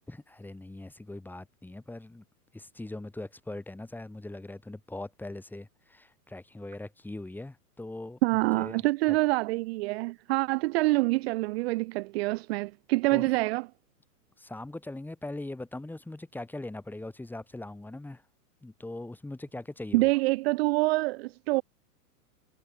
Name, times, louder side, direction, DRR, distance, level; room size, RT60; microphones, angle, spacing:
voice 1, 0.1-2.2 2.5-8.2 8.5-8.8 13.1-13.3 14.4-18.2 18.6-20.1, left 2 dB, 5° left, 5.3 m, -41 dB
voice 2, 8.2-13.7 19.9-21.6, right 22 dB, 40° right, 1.1 m, -26 dB
hypercardioid pair, 140°, 47 cm